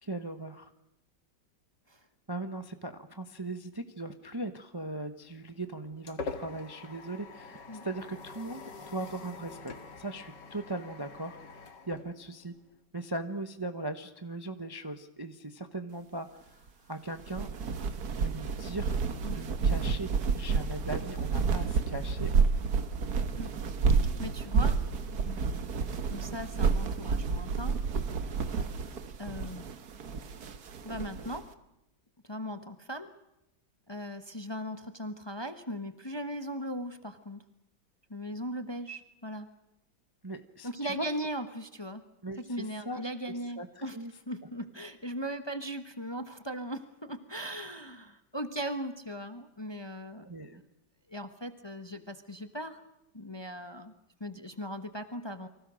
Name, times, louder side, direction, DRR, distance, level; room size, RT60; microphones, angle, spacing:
voice 1, 0.0-0.7 2.3-11.4 11.9-12.5 12.9-17.5 18.2-19.0 19.3-22.3 40.2-40.7 41.0-41.1 42.2-43.1 43.6-43.7 43.9-44.1 50.3-50.6, right 2 dB, 15° right, 8 dB, 0.9 m, -39 dB
sound 1, 5.3-12.8, left 3 dB, 65° left, 2.6 m, -45 dB
sound 2, 17.2-31.4, right 5 dB, 55° right, 1.8 m, -30 dB
voice 2, 23.9-24.8 25.2-25.4 26.1-27.8 29.2-29.7 30.8-31.5 32.2-33.1 33.9-37.4 38.1-39.5 40.6-42.0 42.4-50.3 50.5-50.6 51.1-52.8 53.1-53.9 54.2-55.5, equal, 15° left, 9 dB, 1.1 m, -38 dB
29.5 x 24.0 x 6.4 m, 0.87 s
omnidirectional pair, 2.1 m